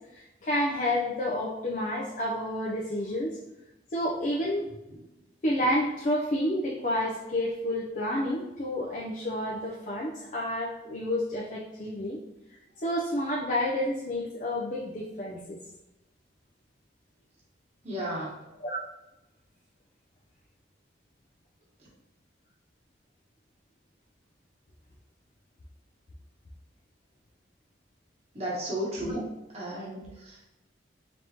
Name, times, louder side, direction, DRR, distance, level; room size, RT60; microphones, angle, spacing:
voice 1, 0.1-3.4 3.9-4.7 5.4-12.2 12.8-15.6 18.6-18.8 29.0-29.2, left 1 dB, 40° left, -4 dB, 0.5 m, -30 dB
voice 2, 17.8-18.4 21.8-21.9 28.3-29.2 29.5-30.5, right 1 dB, 35° right, -6 dB, 1.0 m, -34 dB
4.1 x 3.4 x 2.8 m, 0.96 s
head